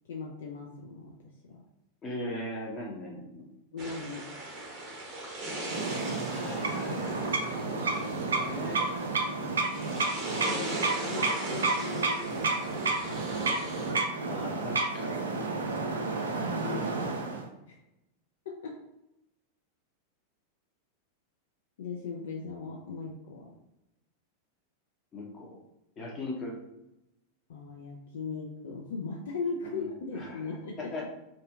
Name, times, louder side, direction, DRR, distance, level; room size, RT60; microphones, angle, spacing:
voice 1, 0.1-1.1 1.5-1.6 3.7-4.2 7.1-7.2 9.2-9.7 10.5-13.5 17.7-17.8 18.6-18.8 21.8-23.5 27.5-30.9, left 4 dB, 60° left, -1 dB, 0.4 m, -39 dB
voice 2, 2.0-3.5 6.2-8.9 14.3-15.6 16.6-17.4 25.1-25.6 26.0-26.6 29.6-29.9 30.1-31.1, left 1 dB, 25° left, -2 dB, 0.8 m, -40 dB
sound 1, 3.8-13.9, right 1 dB, 35° right, 0.7 m, -40 dB
sound 2, 5.6-17.4, right 3 dB, 70° right, 0.3 m, -31 dB
2.6 x 2.4 x 2.3 m, 0.90 s
figure-of-eight pair, 90°, 0 cm